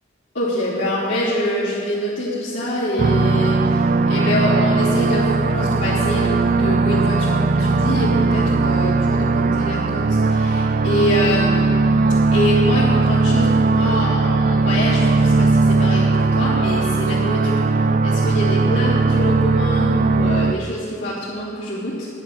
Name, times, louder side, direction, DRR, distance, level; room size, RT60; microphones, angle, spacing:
voice 1, 0.3-22.1, equal, 75° left, -12 dB, 3.0 m, -25 dB
sound 1, 3.0-20.5, right 3 dB, 45° right, 0.4 m, -18 dB
10.5 x 10.5 x 6.6 m, 2.3 s
head